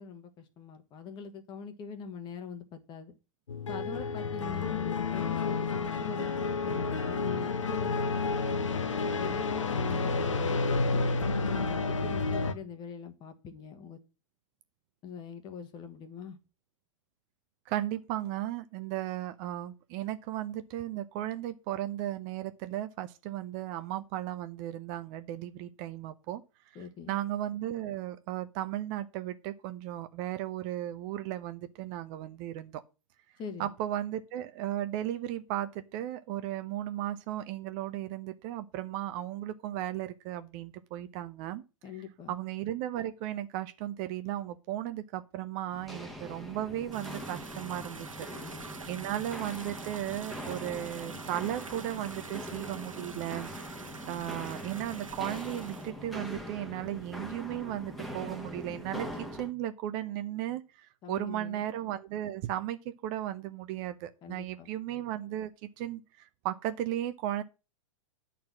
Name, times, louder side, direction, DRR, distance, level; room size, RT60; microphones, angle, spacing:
voice 1, 0.0-3.1 3.7-8.8 9.2-11.1 11.5-14.0 15.0-16.4 26.7-27.2 33.4-33.7 41.8-42.4 48.2-48.7 61.0-61.6 64.2-64.7, left 6 dB, 30° left, 1.4 m, -43 dB
sound 1, 3.5-12.5, left 4 dB, 70° left, 1.1 m, -30 dB
voice 2, 17.7-26.4 27.1-32.8 33.6-41.6 42.3-48.3 48.9-53.5 54.1-67.4, right 12 dB, 35° right, 0.8 m, -35 dB
Walk footsteps, 45.7-59.5, equal, ahead, 1.4 m, -42 dB
sound 2, 46.9-55.9, right 4 dB, 80° right, 1.2 m, -46 dB
10.5 x 4.3 x 7.3 m
figure-of-eight pair, 100°, 17 cm